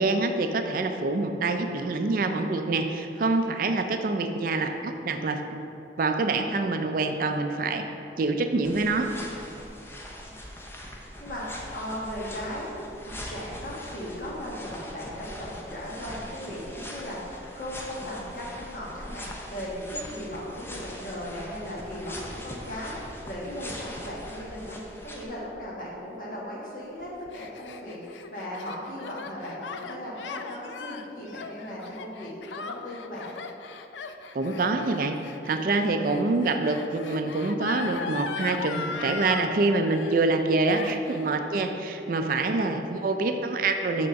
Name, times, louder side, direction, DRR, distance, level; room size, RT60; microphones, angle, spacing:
voice 1, 0.0-5.4 6.0-7.8 8.2-9.1 34.3-35.2 35.4-44.1, right 3 dB, 50° right, 6 dB, 0.4 m, -26 dB
sound 1, 8.6-25.2, left 1 dB, 15° left, 0.5 m, -41 dB
voice 2, 10.8-12.8 13.0-23.0 23.2-33.3, equal, 50° left, -5 dB, 1.5 m, -37 dB
Gasp, 27.0-39.5 39.8-40.4 40.7-41.3, left 5 dB, 85° left, 0.4 m, -38 dB
6.3 x 3.7 x 5.7 m, 2.8 s
head